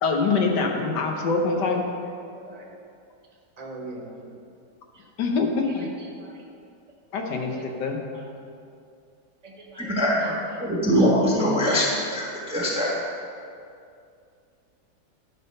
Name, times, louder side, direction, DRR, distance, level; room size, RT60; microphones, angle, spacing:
voice 1, 0.0-1.9 5.2-5.9 7.1-8.0, left 4 dB, 85° left, 2 dB, 1.7 m, -24 dB
voice 2, 2.2-2.7 3.6-4.3 4.9-5.0 5.6-6.4 7.5-7.6 8.1-8.3 9.4-9.9 10.2-10.6 10.9-11.1, right 2 dB, 25° right, -1 dB, 1.3 m, -43 dB
voice 3, 9.8-10.3 10.6-12.9, equal, 5° right, -4 dB, 1.3 m, -22 dB
12.0 x 5.5 x 5.4 m, 2.4 s
omnidirectional pair, 1.8 m